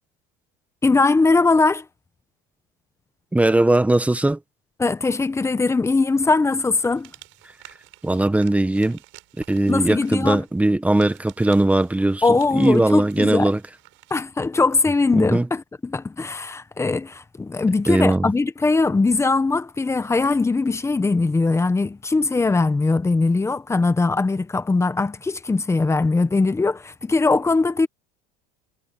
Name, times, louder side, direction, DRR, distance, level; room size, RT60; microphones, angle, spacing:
voice 1, 0.8-1.8 4.8-7.1 9.7-10.4 12.2-13.5 14.1-27.9, left 3 dB, 15° left, 1.3 m, -20 dB
voice 2, 3.3-4.4 8.0-9.0 9.5-13.6 15.1-15.5 17.9-18.3, right 2 dB, 5° right, 1.3 m, -19 dB
sound 1, 6.8-14.3, right 22 dB, 65° right, 7.0 m, -51 dB
supercardioid pair, 125°, 21 cm